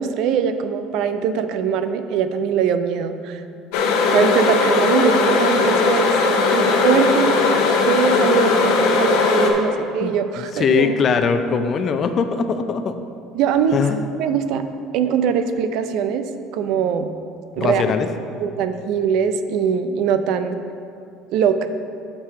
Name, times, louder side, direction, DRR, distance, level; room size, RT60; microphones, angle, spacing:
voice 1, 0.0-3.4 4.1-6.1 6.5-7.5 7.9-11.0 13.3-13.8 14.2-14.7 14.9-17.1 17.5-17.8 18.4-20.6 21.3-21.7, right 7 dB, 70° right, 10 dB, 0.4 m, -21 dB
sound 1, 3.7-9.5, left 4 dB, 80° left, 0.9 m, -18 dB
voice 2, 10.0-13.0 13.7-14.0 17.6-18.1, left 6 dB, 45° left, 8 dB, 0.5 m, -21 dB
6.9 x 5.5 x 5.0 m, 2.4 s
supercardioid pair, 105°, 0 cm